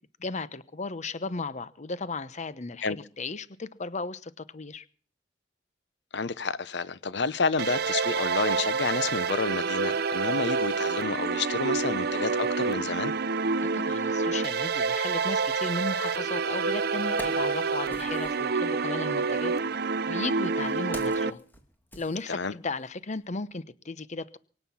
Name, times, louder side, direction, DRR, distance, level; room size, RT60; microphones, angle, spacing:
voice 1, 0.2-4.8 13.6-19.5 20.1-21.4 21.9-24.4, left 3 dB, 40° left, 0.9 m, -35 dB
voice 2, 6.1-13.1 22.3-22.5, left 4 dB, 70° left, 0.9 m, -30 dB
sound 1, 7.6-21.3, right 4 dB, 60° right, 0.8 m, -28 dB
Wood, 16.3-16.4 16.9-18.5 19.5-22.8 23.1-23.3, left 1 dB, 10° left, 2.6 m, -45 dB
24.0 x 9.2 x 5.7 m
head